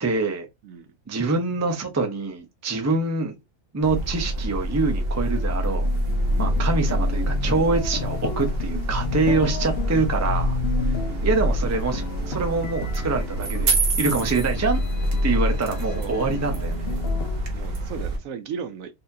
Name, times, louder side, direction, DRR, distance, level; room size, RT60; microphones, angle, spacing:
voice 1, 0.0-0.5 1.1-3.3 3.7-5.9 6.4-10.6 11.2-14.8 15.2-16.9, right 3 dB, 20° right, 0.4 m, -25 dB
sound 1, 3.8-18.2, right 1 dB, 45° right, 1.0 m, -26 dB
sound 2, 4.8-17.4, left 7 dB, 65° left, 0.6 m, -34 dB
voice 2, 15.9-16.2 17.5-18.9, right 7 dB, 70° right, 0.9 m, -36 dB
4.1 x 2.7 x 2.6 m
omnidirectional pair, 1.6 m